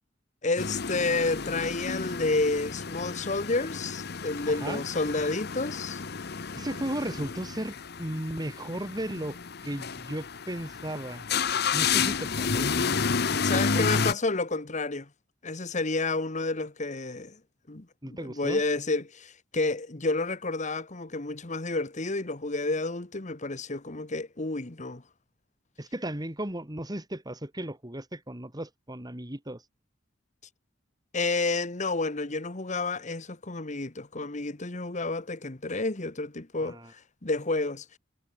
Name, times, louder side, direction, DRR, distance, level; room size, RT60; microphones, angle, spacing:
voice 1, 0.4-6.0 13.3-15.1 15.4-17.4 17.7-25.0 31.1-38.0, left 3 dB, 40° left, 1.5 m, -30 dB
sound 1, 0.6-14.1, left 5 dB, 55° left, 1.0 m, -31 dB
voice 2, 4.5-4.8 6.6-11.2 11.7-12.9 13.5-14.1 18.0-18.6 25.8-29.6 36.6-36.9, right 1 dB, 20° right, 2.6 m, -35 dB
head